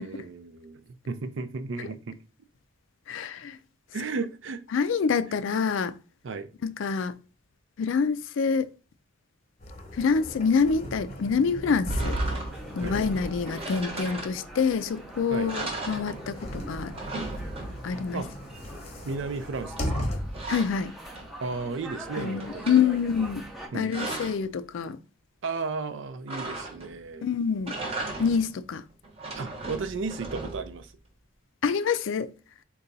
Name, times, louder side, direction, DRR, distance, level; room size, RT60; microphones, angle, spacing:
voice 1, 0.0-2.2 3.9-4.6 6.2-6.5 12.8-13.0 15.3-15.5 18.1-18.3 19.0-20.1 21.4-22.8 23.7-24.4 25.4-27.3 29.4-30.9, right 4 dB, 65° right, 0.4 m, -34 dB
voice 2, 3.1-3.6 4.7-5.9 6.6-7.1 7.8-8.7 10.0-12.2 12.8-16.9 17.8-18.2 20.5-20.9 22.2-23.4 23.7-25.0 27.2-27.7 28.2-28.8 31.6-32.3, left 6 dB, 70° left, 0.4 m, -26 dB
sound 1, 9.6-20.6 21.0-21.1 22.6-23.5, equal, 30° left, 0.8 m, -36 dB
sound 2, 11.9-12.8 13.5-14.7 15.1-15.2 15.5-16.5 16.8-18.1 19.8-21.5 21.9-22.9 23.5-24.5 26.3-27.1 27.5-28.6 29.0-30.8, right 2 dB, 30° right, 0.8 m, -37 dB
sound 3, 12.5-23.7, right 1 dB, ahead, 0.5 m, -44 dB
3.9 x 2.3 x 3.9 m
head